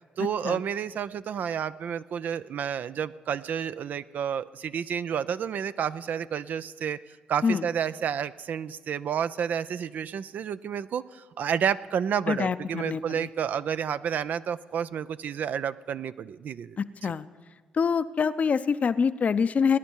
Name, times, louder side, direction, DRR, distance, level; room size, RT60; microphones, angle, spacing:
voice 1, 0.2-7.0 7.3-17.1, right 8 dB, 60° right, 14 dB, 0.4 m, -30 dB
voice 2, 12.3-13.3 16.8-17.3 17.7-19.8, left 6 dB, 50° left, 13 dB, 0.6 m, -25 dB
20.0 x 10.5 x 4.6 m, 1.4 s
hypercardioid pair, 45°, 3 cm